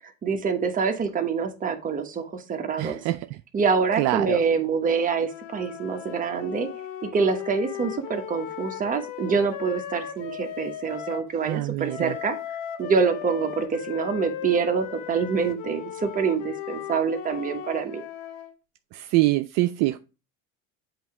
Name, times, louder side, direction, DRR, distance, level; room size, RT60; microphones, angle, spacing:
voice 1, 0.2-3.0 3.5-6.7 7.1-12.4 12.8-18.0, right 5 dB, 25° right, 1.2 m, -26 dB
voice 2, 2.8-3.3 4.0-4.4 11.4-12.2 18.9-20.0, right 17 dB, 65° right, 0.5 m, -24 dB
sound 1, 5.2-11.3 11.9-18.5, left 11 dB, 70° left, 0.9 m, -37 dB
7.9 x 2.9 x 4.7 m
supercardioid pair, 110°, 30 cm